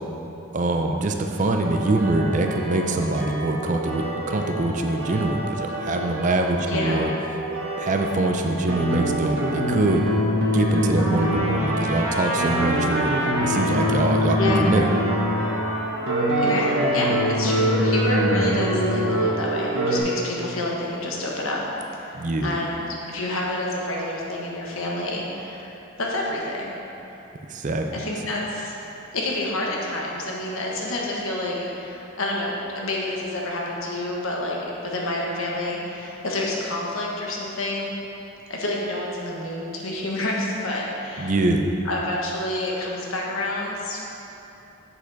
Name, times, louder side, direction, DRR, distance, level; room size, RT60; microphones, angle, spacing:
voice 1, 0.5-7.1 7.8-10.0 10.5-13.1 13.4-14.8 22.1-22.6 27.5-27.9 41.2-41.7, right 2 dB, 35° right, 4 dB, 0.4 m, -24 dB
sound 1, 1.6-20.0, equal, 65° right, 1.1 m, -25 dB
voice 2, 6.6-7.0 14.3-14.7 16.4-21.6 22.0-26.7 27.9-28.7 29.1-37.9 38.5-41.3 41.8-44.0, left 1 dB, 70° left, -3 dB, 1.2 m, -28 dB
Trumpet, 11.0-18.1, right 1 dB, 15° right, 1.6 m, -30 dB
7.1 x 6.8 x 4.0 m, 3.0 s
head